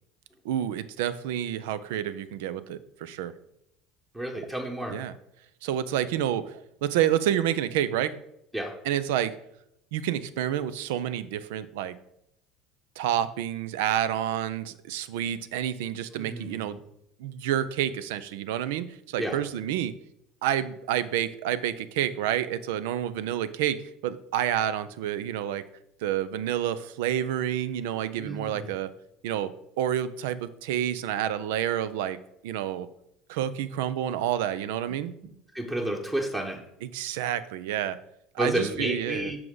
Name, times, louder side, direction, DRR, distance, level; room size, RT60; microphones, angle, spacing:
voice 1, 0.4-3.3 4.9-5.1 5.6-8.2 8.9-9.4 9.9-12.0 13.0-16.8 17.2-19.9 20.4-25.6 26.0-28.9 29.2-32.2 32.4-32.9 33.3-35.1 36.9-38.0 38.3-39.3, right 11 dB, 65° right, 15 dB, 0.5 m, -29 dB
voice 2, 4.1-5.0 8.5-8.8 16.1-16.8 19.2-19.4 28.2-28.7 35.5-36.6 38.4-39.4, right 1 dB, 15° right, 1 dB, 1.2 m, -31 dB
7.6 x 6.3 x 3.8 m, 0.79 s
figure-of-eight pair, 65°, 0 cm